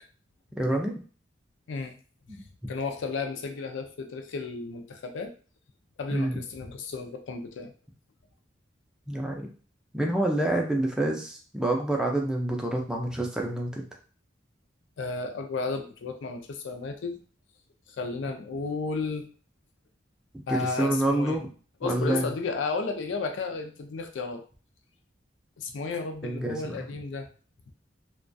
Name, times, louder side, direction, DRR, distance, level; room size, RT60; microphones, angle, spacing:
voice 1, 0.6-0.9 2.3-2.4 6.1-6.4 9.1-9.5 9.9-13.8 20.5-21.5 21.8-22.3 26.2-26.8, right 1 dB, 5° right, 1 dB, 0.3 m, -27 dB
voice 2, 2.7-5.3 6.0-7.7 15.0-17.2 18.0-19.3 20.5-21.4 21.8-24.4 25.6-27.3, left 4 dB, 80° left, 6 dB, 0.4 m, -33 dB
2.3 x 2.2 x 2.5 m, 0.39 s
head